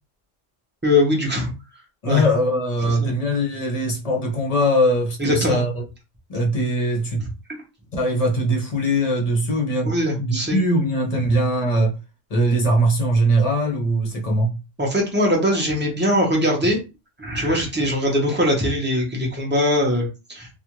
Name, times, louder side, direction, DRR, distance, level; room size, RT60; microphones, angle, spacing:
voice 1, 0.8-1.5 2.1-2.2 3.0-3.1 5.2-5.6 7.5-7.6 9.8-10.6 14.8-16.8 17.2-20.5, left 1 dB, 10° right, 0.6 m, -21 dB
voice 2, 2.0-5.8 6.3-7.3 7.9-12.0 12.3-14.6, equal, 35° left, 0.7 m, -21 dB
2.4 x 2.3 x 2.9 m
omnidirectional pair, 1.2 m